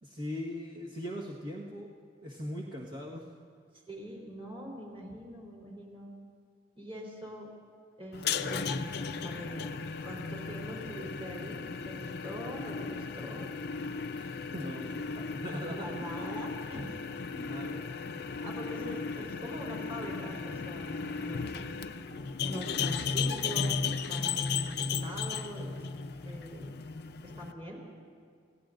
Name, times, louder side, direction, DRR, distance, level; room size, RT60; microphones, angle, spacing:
voice 1, 0.0-1.9 2.2-3.3 14.2-15.9 17.3-17.9 18.7-19.4 23.0-23.2, equal, 50° right, -5 dB, 1.5 m, -40 dB
voice 2, 3.9-6.1 6.8-7.5 8.0-9.7 10.0-13.6 15.7-17.0 17.4-17.5 18.4-21.4 22.4-25.8 26.2-26.7 27.2-27.8, equal, 30° right, -3 dB, 3.7 m, -43 dB
sound 1, 8.1-27.5, left 5 dB, 55° left, 0.5 m, -35 dB
29.5 x 16.5 x 2.6 m, 2.1 s
head